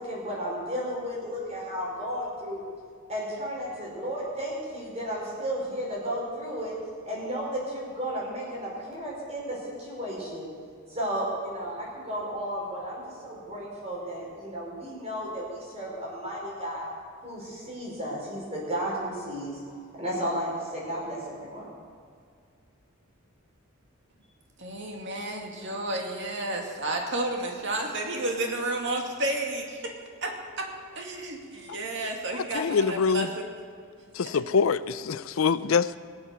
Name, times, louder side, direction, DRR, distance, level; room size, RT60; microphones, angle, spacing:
voice 1, 0.0-2.6 3.1-6.8 7.0-10.5 10.9-16.9 17.2-21.7, equal, 30° right, -4 dB, 5.0 m, -33 dB
voice 2, 24.6-29.9 30.2-33.5, right 1 dB, 60° right, 2 dB, 2.2 m, -31 dB
voice 3, 32.3-33.3 34.1-36.0, left 5 dB, 75° left, 16 dB, 0.5 m, -25 dB
21.0 x 7.8 x 6.8 m, 2.2 s
head